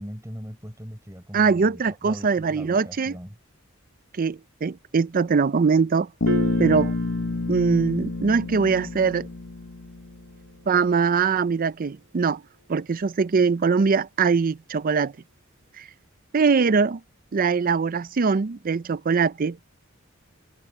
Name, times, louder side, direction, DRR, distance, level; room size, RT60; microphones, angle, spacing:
voice 1, 0.0-3.4, equal, 15° right, 6.1 m, -40 dB
voice 2, 1.3-3.1 4.2-6.1 6.6-6.9 7.5-9.3 10.7-12.4 12.7-15.1 15.8-15.9 16.3-17.0 17.3-19.6, right 5 dB, 45° right, 0.5 m, -22 dB
Bass guitar, 6.2-10.3, left 2 dB, 90° left, 1.2 m, -28 dB
Piano, 6.3-12.9, right 1 dB, 60° right, 5.3 m, -39 dB
head